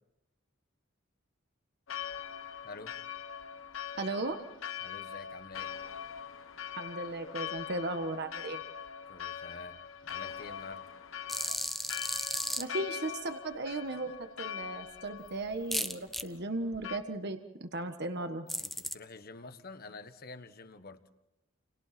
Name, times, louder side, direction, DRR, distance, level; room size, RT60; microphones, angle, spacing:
Church bell, 1.9-17.0, left 8 dB, 75° left, 1.2 m, -42 dB
voice 1, 4.0-4.4 6.8-8.6 11.9-12.1 12.6-14.1 14.4-18.5, right 2 dB, 55° right, 7 dB, 1.4 m, -36 dB
voice 2, 4.8-5.7 9.1-9.8 10.0-10.9 18.6-21.0, left 3 dB, 50° left, 10 dB, 1.4 m, -48 dB
sound 1, 11.3-12.6 15.7-16.2 18.5-18.9, equal, ahead, 0.9 m, -34 dB
29.5 x 28.5 x 4.3 m, 0.93 s
head